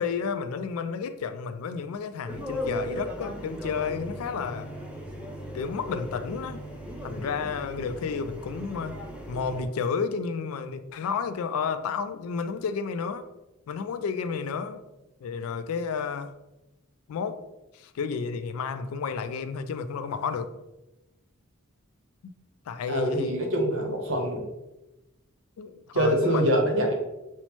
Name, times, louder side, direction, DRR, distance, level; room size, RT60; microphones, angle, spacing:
voice 1, 0.0-4.7 5.5-6.6 7.0-9.0 9.3-13.3 13.7-14.8 15.2-16.3 17.1-17.5 17.7-20.5 22.7-23.4 25.6-26.5, left 5 dB, 80° left, 0.3 m, -31 dB
sound 1, 2.3-9.7, equal, 5° right, 0.5 m, -37 dB
voice 2, 22.9-24.4 25.9-26.9, right 1 dB, 65° right, 0.8 m, -24 dB
5.4 x 2.0 x 3.0 m
head